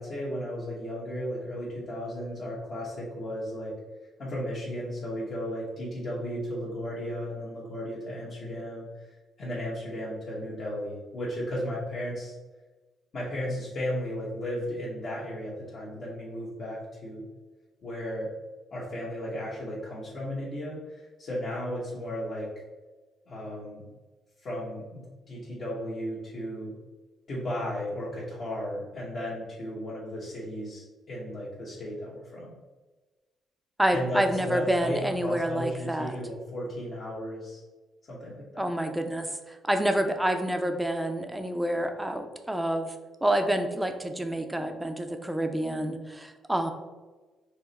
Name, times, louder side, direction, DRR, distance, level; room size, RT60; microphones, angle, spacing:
voice 1, 0.0-3.7 4.2-12.3 13.1-17.2 17.8-18.3 18.7-22.5 23.3-23.9 24.4-26.8 27.3-32.5 33.9-37.6 38.1-38.7, equal, 55° left, -8 dB, 1.2 m, -35 dB
voice 2, 33.8-36.1 38.6-42.9 43.2-46.7, right 1 dB, 10° right, 6 dB, 0.5 m, -28 dB
4.6 x 2.1 x 4.1 m, 1.3 s
cardioid pair, 90°, 0 cm